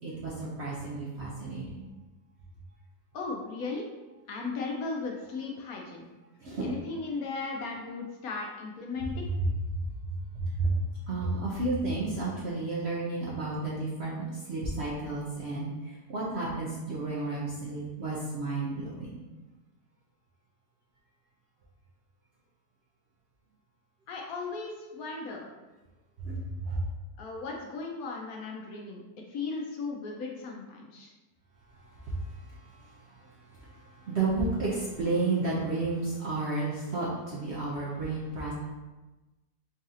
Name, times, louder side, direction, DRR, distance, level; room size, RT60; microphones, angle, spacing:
voice 1, 0.0-1.9 6.4-6.7 10.3-10.8 11.1-19.2 26.2-26.8 32.0-33.3 33.7-38.5, right 3 dB, 55° right, -6 dB, 0.7 m, -32 dB
voice 2, 3.1-3.8 4.3-6.0 6.6-9.3 24.1-25.5 27.2-29.0 29.3-31.1, left 4 dB, 70° left, 0 dB, 1.0 m, -36 dB
4.0 x 2.7 x 3.7 m, 1.1 s
omnidirectional pair, 1.8 m